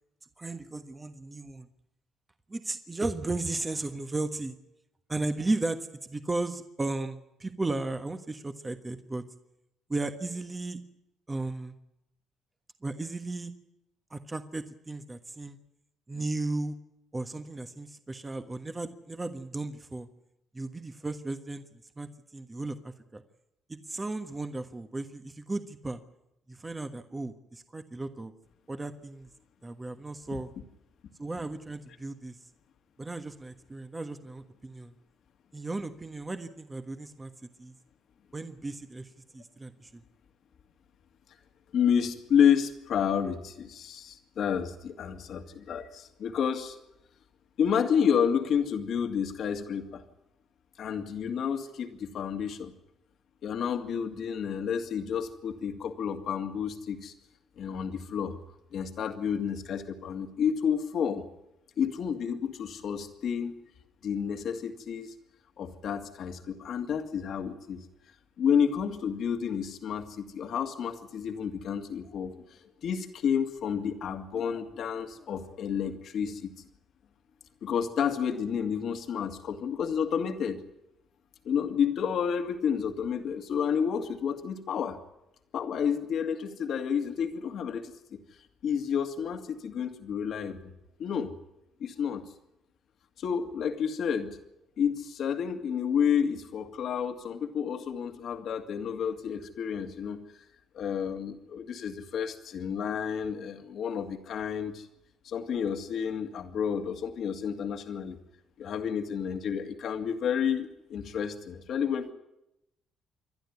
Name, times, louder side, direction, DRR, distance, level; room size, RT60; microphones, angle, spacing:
voice 1, 0.4-1.7 2.5-4.6 5.1-9.2 9.9-10.8 11.3-11.7 12.8-13.5 14.1-15.6 16.1-16.8 17.1-20.1 20.5-21.6 22.0-23.2 23.7-26.0 26.5-28.3 28.7-29.3 29.6-30.5 31.2-32.4 33.0-34.9 35.5-37.3 37.6-37.7 38.3-40.0, right 2 dB, 20° right, 8 dB, 1.4 m, -35 dB
voice 2, 41.7-46.8 47.6-50.0 50.8-52.7 53.4-57.1 57.6-58.4 58.7-61.3 61.8-63.6 64.0-65.1 65.6-67.8 68.4-76.5 77.6-80.6 81.4-85.0 85.5-88.2 88.6-90.7 91.0-91.4 91.8-92.2 93.2-94.4 94.8-100.4 100.7-104.9 105.2-108.2 108.6-112.1, left 7 dB, 65° left, 7 dB, 2.0 m, -30 dB
27.5 x 11.5 x 9.5 m, 0.91 s
supercardioid pair, 65°, 0 cm